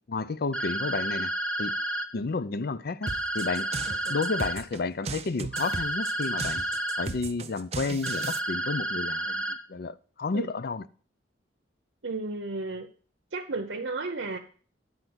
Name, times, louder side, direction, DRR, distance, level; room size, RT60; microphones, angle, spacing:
voice 1, 0.1-1.3 1.6-1.8 2.1-3.7 4.1-6.6 7.0-10.9, left 4 dB, 55° left, 0.5 m, -31 dB
sound 1, 0.5-2.1 3.0-4.6 5.5-7.1 8.0-9.6, right 1 dB, 5° left, 0.9 m, -31 dB
sound 2, 3.1-8.4, right 4 dB, 35° right, 0.6 m, -36 dB
voice 2, 3.9-4.2 10.3-10.5 12.0-12.9 13.3-14.4, right 3 dB, 70° right, 0.8 m, -33 dB
10.5 x 4.6 x 8.0 m
head